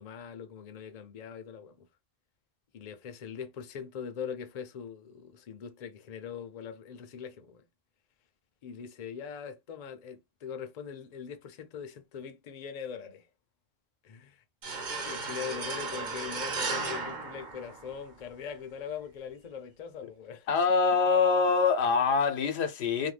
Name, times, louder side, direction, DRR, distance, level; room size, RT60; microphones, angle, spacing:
voice 1, 0.0-1.9 2.7-7.6 8.6-13.3 14.0-14.4 15.0-20.5, left 7 dB, 50° left, 0.5 m, -41 dB
sound 1, 14.6-18.2, right 4 dB, 50° right, 0.8 m, -35 dB
voice 2, 20.5-23.1, left 5 dB, 90° left, 0.9 m, -24 dB
2.6 x 2.2 x 3.1 m
omnidirectional pair, 1.1 m